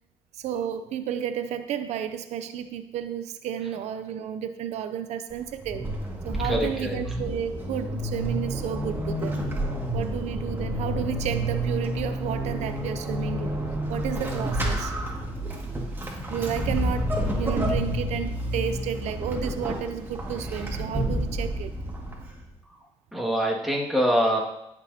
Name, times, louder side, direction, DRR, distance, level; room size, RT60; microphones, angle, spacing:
voice 1, 0.3-5.9 6.2-9.5 9.9-13.6 13.9-14.9 16.3-21.7, right 9 dB, 80° right, 10 dB, 0.5 m, -32 dB
Vehicle / Accelerating revving vroom / Squeak, 5.3-22.5, equal, 20° right, 1.9 m, -29 dB
voice 2, 6.4-7.1 22.6-22.8 23.1-24.4, equal, ahead, -3 dB, 2.0 m, -25 dB
14.0 x 6.2 x 2.8 m, 0.86 s
cardioid pair, 100°, 11 cm